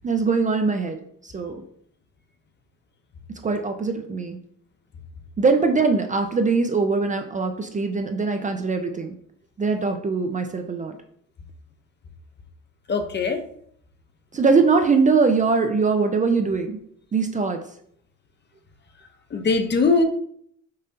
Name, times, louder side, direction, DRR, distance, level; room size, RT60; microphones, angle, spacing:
voice 1, 0.0-1.0 1.2-1.6 3.4-4.4 5.4-9.2 9.6-10.9 14.3-16.8 17.1-17.6, right 4 dB, 25° right, 6 dB, 0.4 m, -22 dB
voice 2, 12.9-13.4 19.3-20.0, left 4 dB, 35° left, 6 dB, 0.6 m, -20 dB
5.5 x 2.6 x 2.5 m, 0.65 s
cardioid pair, 90°, 30 cm